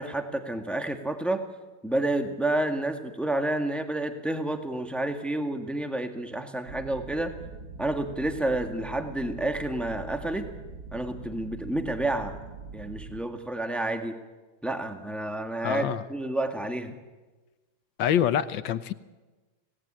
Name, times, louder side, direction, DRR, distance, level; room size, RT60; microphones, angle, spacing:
voice 1, 0.0-1.4 1.8-7.3 7.8-10.5 10.9-12.4 12.7-14.1 14.6-16.9, right 1 dB, ahead, 6 dB, 1.6 m, -29 dB
sound 1, 6.7-13.2, right 4 dB, 75° right, 2.5 m, -43 dB
voice 2, 15.6-16.0 18.0-18.9, left 10 dB, 75° left, 13 dB, 1.7 m, -25 dB
26.5 x 18.5 x 8.9 m, 1.2 s
omnidirectional pair, 2.1 m